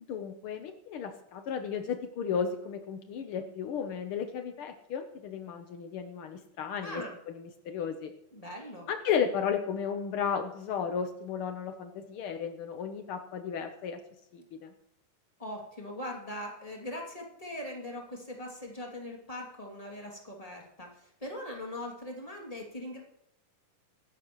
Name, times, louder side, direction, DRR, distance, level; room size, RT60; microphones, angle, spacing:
voice 1, 0.1-8.1 8.9-14.0 14.3-14.7, left 7 dB, 75° left, 6 dB, 1.2 m, -34 dB
voice 2, 6.8-7.1 8.3-8.9 15.4-23.0, left 1 dB, 10° left, 0 dB, 2.2 m, -41 dB
23.5 x 12.5 x 3.1 m, 0.83 s
omnidirectional pair, 3.7 m